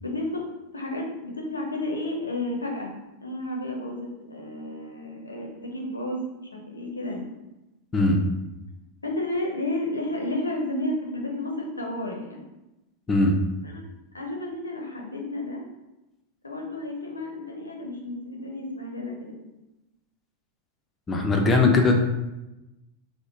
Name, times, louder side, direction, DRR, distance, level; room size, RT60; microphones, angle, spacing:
voice 1, 0.0-0.4 0.7-2.9 3.2-6.2 6.5-7.3 9.0-12.4 13.6-13.8 14.1-15.6 16.4-19.4, left 1 dB, 80° left, 0 dB, 0.6 m, -32 dB
voice 2, 21.1-22.0, left 2 dB, 20° left, 2 dB, 0.5 m, -19 dB
2.9 x 2.1 x 3.7 m, 0.98 s
figure-of-eight pair, 90°, 0 cm